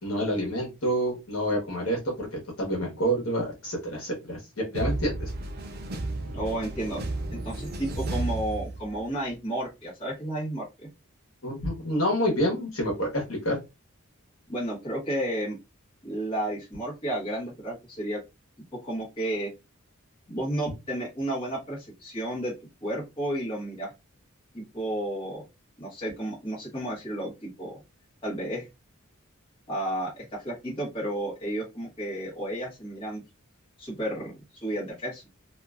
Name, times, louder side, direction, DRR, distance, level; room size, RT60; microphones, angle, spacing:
voice 1, 0.0-5.3 11.4-13.6, equal, 65° left, -2 dB, 1.4 m, -28 dB
sound 1, 4.7-9.2, right 2 dB, 45° right, 0.5 m, -33 dB
voice 2, 6.3-7.0 7.3-10.6 14.5-15.6 16.0-18.2 18.8-19.5 20.3-22.5 22.8-23.9 24.5-25.4 25.8-27.7 28.2-28.7 29.7-33.2 33.8-34.3 34.6-35.2, right 1 dB, 25° left, -6 dB, 1.3 m, -32 dB
2.9 x 2.5 x 2.3 m, 0.24 s
head